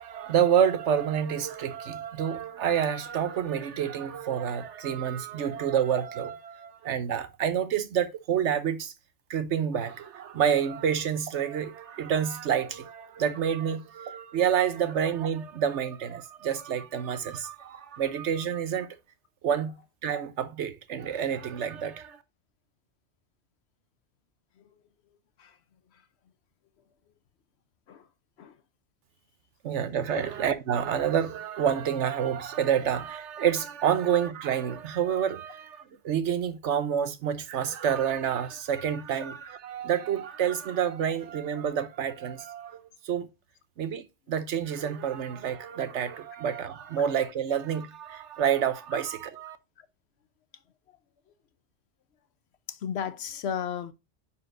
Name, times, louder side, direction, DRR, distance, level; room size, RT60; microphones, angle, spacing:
voice 1, 0.0-8.9 9.3-18.9 19.4-22.2 29.6-42.8 43.0-43.3 43.8-49.6, right 8 dB, 75° right, 1.1 m, -28 dB
voice 2, 52.7-53.9, left 8 dB, 65° left, 0.9 m, -34 dB
9.5 x 4.1 x 2.5 m
omnidirectional pair, 1.2 m